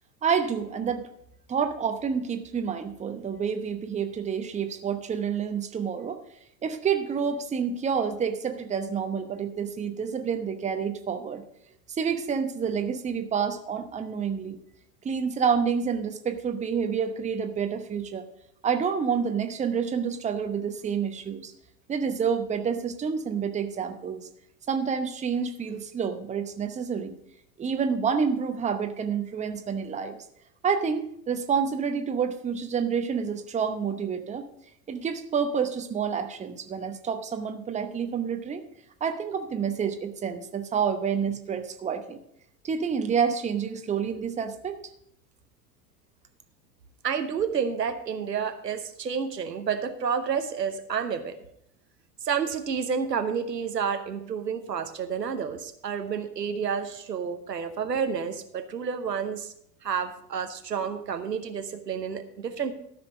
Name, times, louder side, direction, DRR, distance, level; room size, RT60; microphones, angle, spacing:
voice 1, 0.2-1.1 1.5-6.2 6.6-11.4 11.9-14.6 15.0-18.2 18.6-21.5 21.9-24.3 24.7-27.1 27.6-30.2 30.6-34.5 34.9-38.6 39.0-42.2 42.6-44.8, right 6 dB, 15° right, 7 dB, 0.9 m, -28 dB
voice 2, 47.0-51.4 52.2-59.5 59.8-62.7, right 6 dB, 80° right, 8 dB, 1.0 m, -30 dB
13.5 x 6.1 x 5.1 m, 0.72 s
figure-of-eight pair, 80°, 48 cm